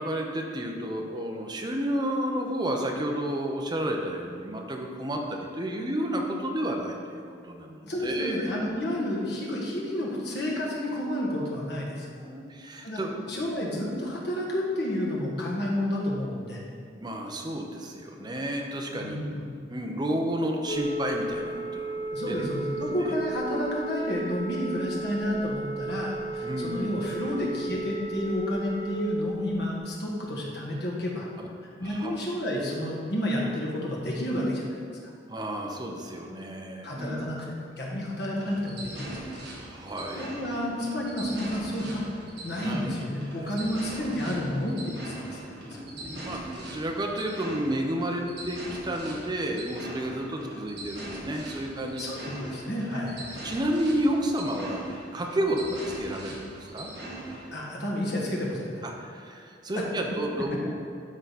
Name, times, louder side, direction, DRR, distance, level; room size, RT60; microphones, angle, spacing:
voice 1, 0.0-8.6 10.5-10.6 12.2-13.4 17.0-19.2 19.7-22.4 22.9-23.0 26.4-27.0 31.4-31.5 31.8-32.1 35.3-37.2 39.6-40.3 42.6-42.8 43.1-43.5 44.0-44.2 44.7-52.0 53.4-56.9 58.8-60.7, right 1 dB, 25° right, 1 dB, 0.8 m, -31 dB
voice 2, 7.8-12.1 12.8-13.0 13.3-16.6 18.9-19.6 22.1-31.3 31.6-34.6 35.0-35.1 36.8-37.4 37.8-39.2 40.1-42.0 42.4-45.1 45.5-45.8 52.0-53.2 57.5-58.8, left 1 dB, 65° left, -3 dB, 1.6 m, -30 dB
Telephone, 20.7-29.0, right 2 dB, 45° left, 2.1 m, -34 dB
sound 1, 38.4-57.5, right 1 dB, 65° right, 1.9 m, -41 dB
12.0 x 4.0 x 4.1 m, 2.2 s
head